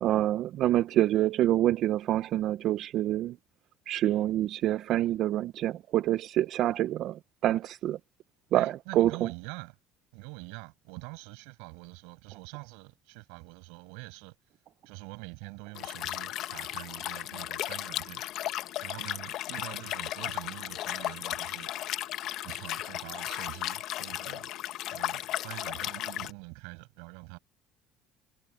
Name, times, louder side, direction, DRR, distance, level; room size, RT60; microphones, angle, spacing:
voice 1, 0.0-3.4 3.9-8.0 8.5-9.3, right 13 dB, 60° right, 0.5 m, -27 dB
voice 2, 8.5-9.7 10.1-14.3 14.9-18.2 18.8-21.7 22.4-24.5 24.9-27.4, right 33 dB, 90° right, 7.3 m, -45 dB
Liquid, 15.7-26.3, left 14 dB, 65° left, 1.2 m, -35 dB
cardioid pair, 120°, 0 cm